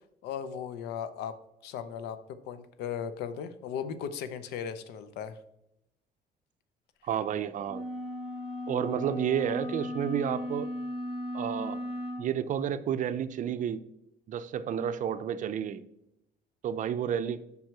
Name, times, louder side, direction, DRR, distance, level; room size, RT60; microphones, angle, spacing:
voice 1, 0.2-1.3 1.6-2.2 2.5-5.4, left 8 dB, 85° left, 11 dB, 0.6 m, -37 dB
voice 2, 7.0-7.8 8.7-10.7 11.3-11.8 12.2-13.8 14.3-15.8 16.6-17.4, right 9 dB, 50° right, 13 dB, 0.5 m, -31 dB
sound 1, 7.7-12.3, left 1 dB, 30° left, 1.8 m, -36 dB
5.4 x 4.6 x 4.5 m, 0.84 s
cardioid pair, 110°, 17 cm